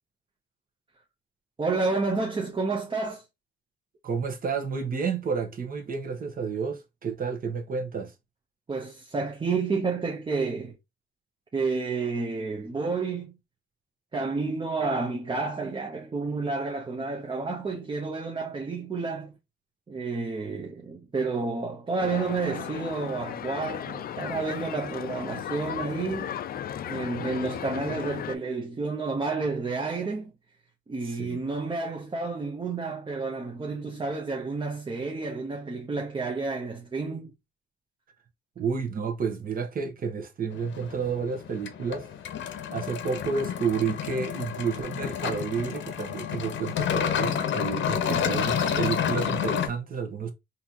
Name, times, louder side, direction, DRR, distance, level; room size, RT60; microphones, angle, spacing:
voice 1, 1.6-3.2 8.7-10.8 11.5-13.3 14.1-19.3 19.9-26.3 26.9-30.3 30.9-37.3 48.1-48.4, right 4 dB, 25° right, 0.8 m, -30 dB
voice 2, 4.0-8.1 31.0-31.4 38.6-42.1 42.7-50.3, right 5 dB, 45° right, 1.0 m, -30 dB
sound 1, 22.0-28.4, left 10 dB, 50° left, 0.4 m, -35 dB
sound 2, 40.5-49.7, left 8 dB, 70° left, 0.8 m, -30 dB
4.1 x 2.7 x 2.8 m
cardioid pair, 90°, 20 cm